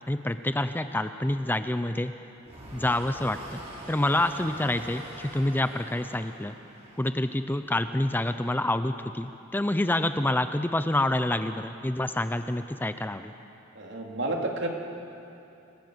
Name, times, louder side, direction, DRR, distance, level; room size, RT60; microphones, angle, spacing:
voice 1, 0.1-2.1 2.7-3.6 3.9-6.5 7.0-13.3, left 1 dB, 10° left, 10 dB, 0.5 m, -27 dB
sound 1, 2.4-7.6, right 1 dB, 35° right, 6.7 m, -44 dB
voice 2, 13.7-14.7, right 2 dB, 60° right, 1 dB, 2.8 m, -30 dB
26.5 x 16.5 x 7.9 m, 2.8 s
head